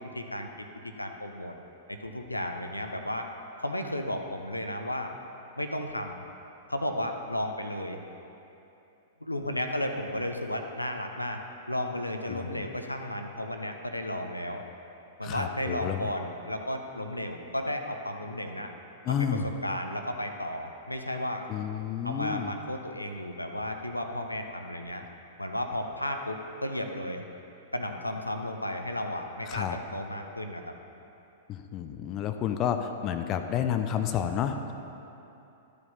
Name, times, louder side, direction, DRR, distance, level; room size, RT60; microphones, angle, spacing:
voice 1, 0.1-1.5 1.9-3.3 3.6-5.1 5.6-6.2 6.7-8.0 9.2-11.4 11.7-14.6 15.2-18.7 19.1-21.5 22.0-25.0 25.4-27.2 27.7-30.7, left 1 dB, 90° left, 5 dB, 0.6 m, -33 dB
voice 2, 12.3-12.7 15.2-16.1 19.0-19.5 21.5-22.5 29.4-29.8 31.5-34.7, left 9 dB, 30° left, 7 dB, 0.5 m, -30 dB
12.0 x 4.9 x 5.3 m, 2.9 s
figure-of-eight pair, 100°, 0 cm